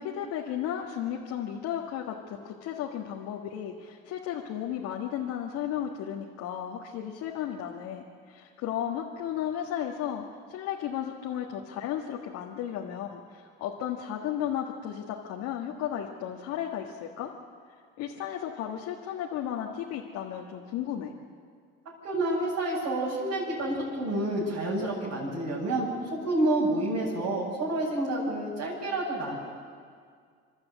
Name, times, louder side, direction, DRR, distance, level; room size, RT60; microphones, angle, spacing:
voice 1, 0.0-17.3 18.0-21.1, left 10 dB, 70° left, 0 dB, 1.7 m, -34 dB
voice 2, 22.0-29.4, right 1 dB, 65° right, -8 dB, 6.8 m, -29 dB
26.5 x 12.0 x 8.1 m, 2.1 s
supercardioid pair, 80°, 29 cm